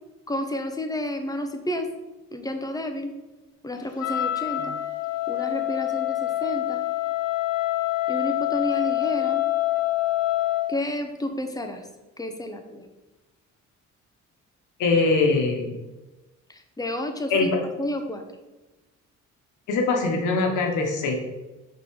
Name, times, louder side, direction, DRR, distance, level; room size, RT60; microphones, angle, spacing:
voice 1, 0.3-1.9 2.3-3.1 3.6-4.8 5.3-6.8 8.1-9.4 10.7-11.9 12.2-12.9 16.5-17.5 17.8-18.2, left 1 dB, 10° left, 5 dB, 0.8 m, -30 dB
Wind instrument woodwind instrument, 4.0-10.8, left 15 dB, 55° left, 0.6 m, -26 dB
voice 2, 14.8-15.7 17.3-17.6 19.7-21.2, left 3 dB, 80° left, 2 dB, 1.2 m, -22 dB
5.3 x 3.8 x 4.7 m, 1.1 s
cardioid pair, 90°, 30 cm